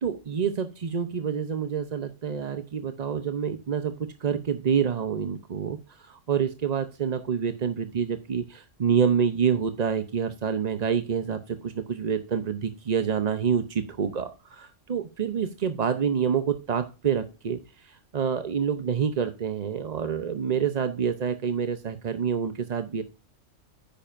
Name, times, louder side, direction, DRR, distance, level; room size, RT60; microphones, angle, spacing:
voice 1, 0.0-23.0, right 7 dB, 40° right, 9 dB, 0.6 m, -27 dB
10.5 x 8.8 x 2.5 m, 0.30 s
omnidirectional pair, 1.3 m